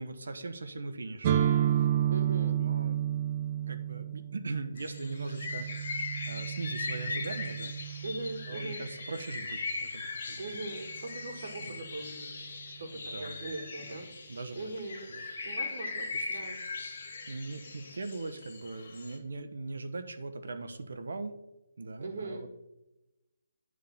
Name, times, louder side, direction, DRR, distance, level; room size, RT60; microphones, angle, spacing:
voice 1, 0.0-1.6 2.2-3.0 3.7-7.8 8.5-10.6 11.6-11.9 12.9-13.3 13.8-14.6 15.1-15.2 16.1-16.4 17.3-21.4 21.8-22.5, right 3 dB, 75° right, 8 dB, 1.0 m, -40 dB
sound 1, 1.2-9.0, right 10 dB, 25° right, 0.5 m, -31 dB
voice 2, 2.1-2.6 8.0-8.8 10.4-14.1 14.5-15.1 15.4-16.6 22.0-22.4, right 2 dB, 50° right, 0 dB, 1.6 m, -40 dB
sound 2, 4.8-19.2, left 4 dB, 45° left, 1.7 m, -40 dB
9.4 x 3.7 x 6.9 m, 0.96 s
hypercardioid pair, 175°, 0 cm